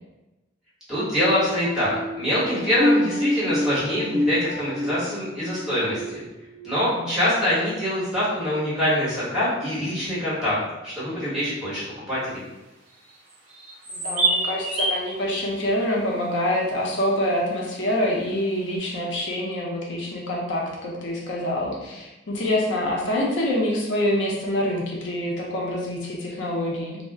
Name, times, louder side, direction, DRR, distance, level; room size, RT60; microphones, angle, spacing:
voice 1, 0.9-1.9 2.2-6.2 6.6-10.6 10.8-12.4, equal, 5° right, -11 dB, 1.2 m, -24 dB
sound 1, 1.2-6.9 7.3-7.6 8.1-8.3, left 1 dB, 40° left, 1.1 m, -28 dB
voice 2, 6.7-7.2 13.9-27.0, left 1 dB, 70° left, -3 dB, 0.6 m, -26 dB
sound 2, 13.3-15.1, right 2 dB, 40° right, 0.7 m, -25 dB
2.3 x 2.0 x 3.4 m, 1.0 s
head